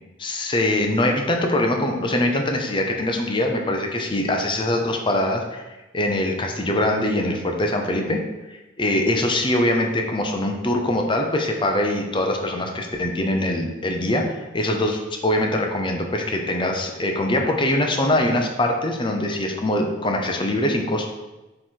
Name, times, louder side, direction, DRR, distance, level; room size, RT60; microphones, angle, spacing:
voice 1, 0.2-8.2 8.5-21.1, left 1 dB, 25° left, 2 dB, 0.7 m, -23 dB
7.5 x 3.3 x 4.5 m, 1.1 s
head